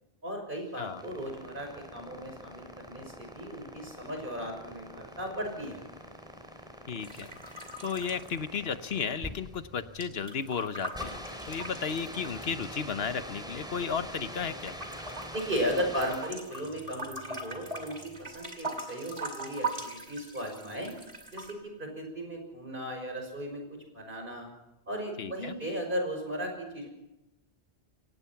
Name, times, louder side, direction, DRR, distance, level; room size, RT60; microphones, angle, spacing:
voice 1, 0.2-5.8 15.3-20.9 21.3-23.6 23.9-24.5 24.9-26.9, equal, 55° right, 3 dB, 6.0 m, -36 dB
sound 1, 0.6-16.5, equal, 5° right, 3.8 m, -44 dB
voice 2, 6.9-7.4 7.8-11.2 11.5-14.7 25.2-25.5, left 6 dB, 75° left, 11 dB, 1.2 m, -34 dB
sound 2, 7.0-9.1 9.3-12.7 13.3-14.3 14.6-21.5, right 2 dB, 40° right, 2.7 m, -41 dB
27.0 x 17.5 x 5.9 m, 0.94 s
omnidirectional pair, 1.0 m